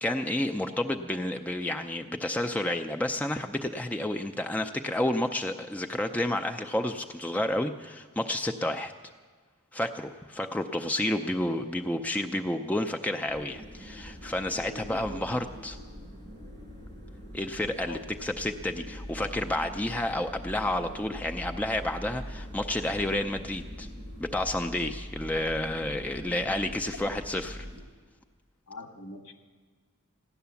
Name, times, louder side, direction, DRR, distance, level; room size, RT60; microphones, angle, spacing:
voice 1, 0.0-8.9 9.7-15.8 17.3-23.9 24.2-27.7, left 1 dB, 5° left, 5 dB, 0.4 m, -30 dB
sound 1, 13.3-27.8, equal, 30° right, 5.0 m, -43 dB
voice 2, 14.7-15.2 15.5-15.6 17.8-18.0 26.9-27.1 28.7-29.3, left 1 dB, 70° left, 5 dB, 1.6 m, -43 dB
16.0 x 10.5 x 7.0 m, 1.6 s
head